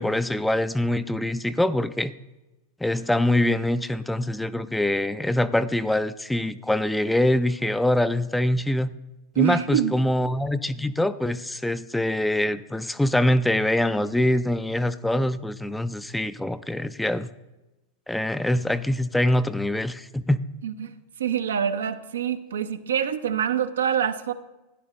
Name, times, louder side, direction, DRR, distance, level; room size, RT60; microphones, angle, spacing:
voice 1, 0.0-2.1 2.8-8.9 9.4-17.3 18.1-20.4, left 1 dB, 5° left, 13 dB, 0.4 m, -24 dB
voice 2, 9.4-10.0 20.6-20.9 21.2-24.3, right 9 dB, 75° right, 9 dB, 0.7 m, -25 dB
12.5 x 10.5 x 3.1 m, 1.0 s
hypercardioid pair, 95°, 0 cm